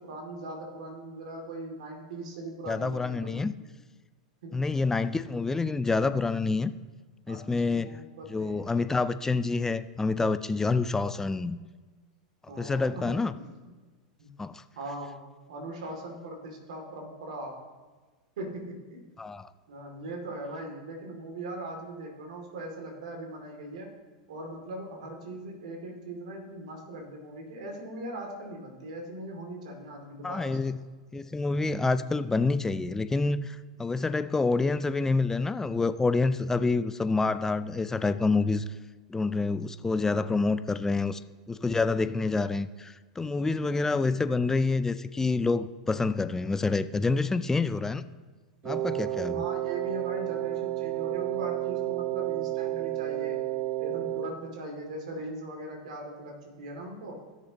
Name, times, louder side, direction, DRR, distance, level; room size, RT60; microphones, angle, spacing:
voice 1, 0.0-3.4 4.4-4.5 7.3-8.7 12.5-13.5 14.2-14.3 14.8-15.2 15.5-17.6 18.4-19.0 19.7-23.9 24.3-30.6 49.0-53.4 53.8-57.2, right 1 dB, 70° right, 1 dB, 2.6 m, -40 dB
voice 2, 2.7-3.5 4.5-6.7 7.3-8.0 8.3-11.6 12.6-13.4 14.4-14.6 19.2-19.5 30.2-30.8 31.1-38.7 39.1-41.2 41.5-48.1 48.6-49.5, left 3 dB, 10° left, 12 dB, 0.4 m, -27 dB
Wind instrument woodwind instrument, 48.6-54.4, right 15 dB, 45° right, 0.5 m, -31 dB
15.5 x 6.8 x 3.0 m, 1.3 s
hypercardioid pair, 100°, 4 cm